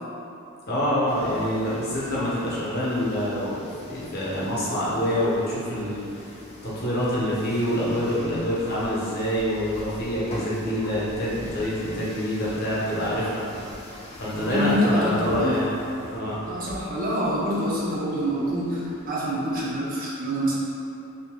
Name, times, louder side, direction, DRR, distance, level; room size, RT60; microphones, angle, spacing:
voice 1, 0.7-6.0 6.6-13.5 14.2-15.7 16.1-16.4, equal, 45° left, -8 dB, 0.8 m, -26 dB
sound 1, 1.1-19.9, left 1 dB, 30° left, 0.4 m, -42 dB
voice 2, 14.3-15.7 16.4-20.6, equal, 40° right, -6 dB, 0.5 m, -26 dB
2.7 x 2.6 x 3.5 m, 2.7 s
head